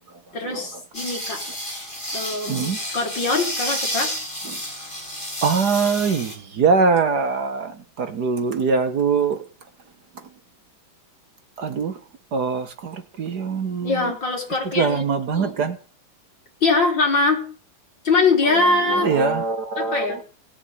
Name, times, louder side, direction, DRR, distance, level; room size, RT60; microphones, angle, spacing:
voice 1, 0.3-1.4 2.1-4.1 13.8-15.0 15.3-15.5 16.6-17.4 18.0-19.1 19.8-20.2, left 3 dB, 60° left, 4.8 m, -22 dB
sound 1, 0.9-6.4, equal, 25° left, 6.0 m, -30 dB
voice 2, 2.5-2.8 5.4-9.4 11.6-11.9 12.3-14.0 14.7-15.8 18.5-18.6 18.8-20.2, right 5 dB, 55° right, 1.7 m, -22 dB
18.0 x 7.2 x 9.2 m
omnidirectional pair, 2.3 m